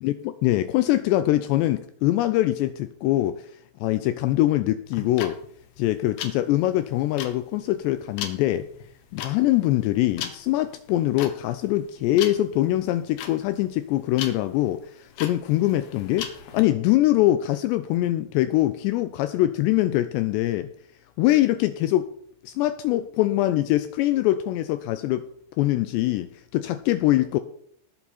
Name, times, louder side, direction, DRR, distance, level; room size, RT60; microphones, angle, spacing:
voice 1, 0.0-3.5 3.8-5.4 5.8-8.7 9.1-20.7 21.2-22.1 22.4-25.3 25.6-27.4, left 15 dB, 85° left, 11 dB, 2.5 m, -23 dB
sound 1, 4.9-16.6, left 9 dB, 70° left, 3.4 m, -38 dB
19.0 x 7.1 x 4.3 m, 0.66 s
omnidirectional pair, 5.5 m